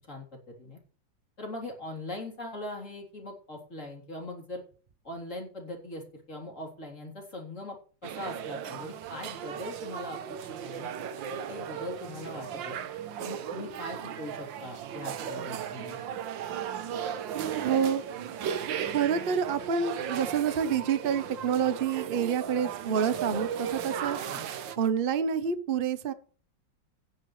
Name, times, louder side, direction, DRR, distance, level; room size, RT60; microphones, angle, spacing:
voice 1, 0.1-0.8 1.4-4.6 5.0-10.9 11.3-12.8 13.2-16.0 24.3-24.4, left 1 dB, 40° left, 0 dB, 3.9 m, -41 dB
sound 1, 8.0-24.8, right 8 dB, 75° right, 1.6 m, -36 dB
voice 2, 17.6-18.0 18.4-18.5 18.8-24.2 24.8-26.1, right 7 dB, 40° right, 12 dB, 0.9 m, -28 dB
16.5 x 10.0 x 3.3 m, 0.40 s
omnidirectional pair, 2.1 m